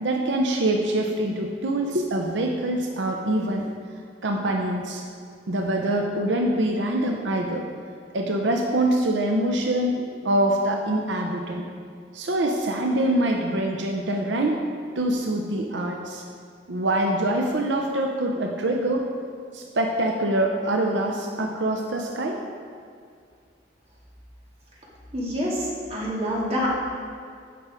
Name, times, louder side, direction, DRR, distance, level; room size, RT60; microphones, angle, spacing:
voice 1, 0.0-3.7 4.2-5.0 5.5-11.7 12.1-14.6 14.9-16.2 16.7-19.1 19.5-22.4, right 1 dB, 85° right, 2 dB, 0.7 m, -25 dB
voice 2, 25.1-26.7, equal, 35° right, -5 dB, 2.1 m, -27 dB
9.3 x 6.2 x 5.0 m, 2.2 s
head